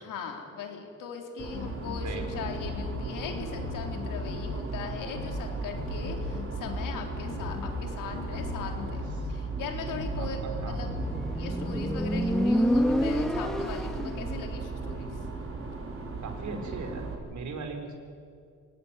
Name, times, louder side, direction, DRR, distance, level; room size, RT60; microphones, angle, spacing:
voice 1, 0.0-9.0 9.3-10.9 11.4-15.2, left 6 dB, 90° left, 3 dB, 3.8 m, -39 dB
sound 1, 1.4-17.1, right 4 dB, 45° right, 5.4 m, -36 dB
sound 2, 1.5-3.1 3.3-4.6 5.1-5.5 5.7-7.9 8.1-9.4 9.9-10.3 10.5-11.1, left 6 dB, 70° left, 2.3 m, -37 dB
voice 2, 2.0-2.6 10.2-10.8 16.2-18.0, right 4 dB, 65° right, 5 dB, 4.2 m, -39 dB
Motorcycle, 10.8-14.3, equal, ahead, 1.6 m, -27 dB
25.5 x 18.0 x 9.9 m, 2.3 s
cardioid pair, 90°, 31 cm